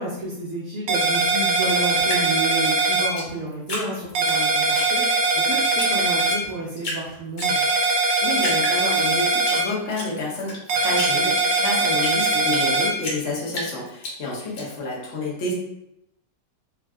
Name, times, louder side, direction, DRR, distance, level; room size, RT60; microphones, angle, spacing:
voice 1, 0.0-7.6, right 2 dB, 60° right, -5 dB, 0.9 m, -31 dB
sound 1, 0.9-3.1 4.2-6.4 7.4-9.6 10.7-12.9, right 3 dB, 85° right, 1.3 m, -21 dB
Drip, 2.0-4.4 4.7-5.4 5.8-5.9 6.2-7.0 7.4-8.0 8.4-9.6 9.9-12.7 13.0-14.6, left 1 dB, 80° left, 1.7 m, -32 dB
voice 2, 8.2-15.5, left 2 dB, 50° left, -4 dB, 0.9 m, -29 dB
3.5 x 2.5 x 2.3 m, 0.83 s
omnidirectional pair, 2.0 m